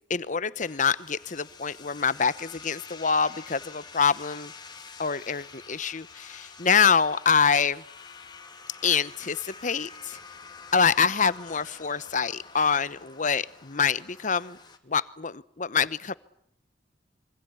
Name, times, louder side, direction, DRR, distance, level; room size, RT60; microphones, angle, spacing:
voice 1, 0.1-4.5 5.0-7.8 8.8-10.2 10.7-14.6 14.9-16.1, left 6 dB, 45° left, 17 dB, 1.0 m, -25 dB
sound 1, 0.6-14.8, left 5 dB, 25° left, 2.7 m, -47 dB
26.5 x 24.5 x 8.3 m, 0.70 s
head